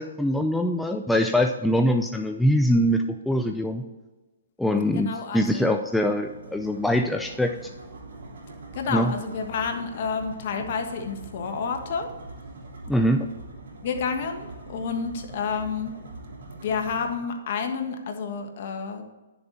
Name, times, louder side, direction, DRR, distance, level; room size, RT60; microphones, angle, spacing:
voice 1, 0.0-3.8 4.6-7.7 8.9-9.1 12.9-13.3, equal, 5° left, 4 dB, 0.4 m, -23 dB
voice 2, 4.9-5.7 8.7-12.1 13.8-15.9 16.5-19.1, left 5 dB, 50° left, 4 dB, 1.5 m, -30 dB
sound 1, 6.2-17.2, right 2 dB, 70° right, 3.3 m, -43 dB
10.5 x 7.0 x 4.0 m, 1.2 s
hypercardioid pair, 150°, 0 cm